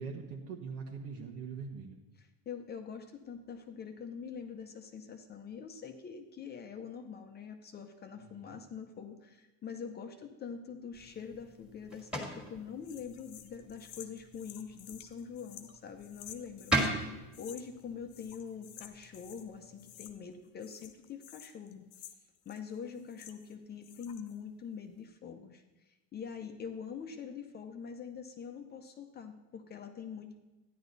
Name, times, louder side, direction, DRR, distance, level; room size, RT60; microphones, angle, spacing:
voice 1, 0.0-2.0 8.2-8.6, right 5 dB, 80° right, 0 dB, 1.5 m, -42 dB
voice 2, 2.2-21.9 22.5-30.4, left 6 dB, 25° left, 5 dB, 0.7 m, -44 dB
sound 1, 10.9-20.1, right 2 dB, 5° right, 1.7 m, -40 dB
sound 2, 12.8-16.9 17.3-17.8 18.1-19.5 19.8-20.3 20.6-23.5 23.8-24.4, left 11 dB, 80° left, 1.1 m, -52 dB
13.5 x 10.0 x 4.0 m, 1.1 s
cardioid pair, 155°, 36 cm